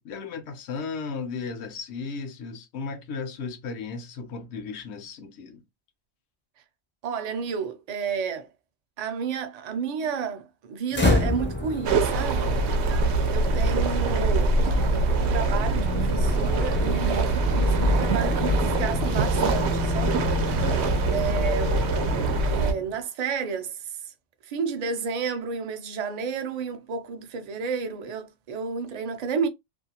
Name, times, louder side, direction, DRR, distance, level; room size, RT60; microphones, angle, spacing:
voice 1, 0.0-5.6 20.6-21.0 22.2-22.4, left 4 dB, 80° left, 0.9 m, -35 dB
voice 2, 7.0-8.5 9.0-12.5 13.3-14.6 14.9-20.2 21.1-21.8 22.5-24.1 24.4-29.5, right 6 dB, 50° right, 0.5 m, -31 dB
sound 1, 10.9-22.9, left 2 dB, 20° left, 0.3 m, -29 dB
sound 2, 11.9-22.7, right 3 dB, 85° right, 0.9 m, -24 dB
2.5 x 2.3 x 2.8 m
omnidirectional pair, 1.1 m